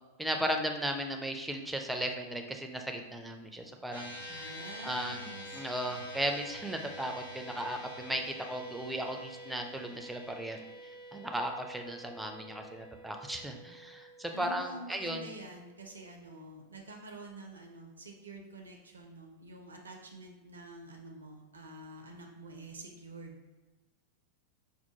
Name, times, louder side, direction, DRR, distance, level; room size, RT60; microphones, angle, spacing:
voice 1, 0.2-4.5 4.8-5.2 5.5-10.6 11.1-15.3, right 1 dB, 5° right, 4 dB, 0.4 m, -36 dB
sound 1, 3.9-16.4, equal, 65° left, 1.4 m, -48 dB
voice 2, 4.4-5.6 14.3-23.4, right 2 dB, 70° right, 2 dB, 0.4 m, -47 dB
5.5 x 2.1 x 2.9 m, 1.2 s
figure-of-eight pair, 90°, 0 cm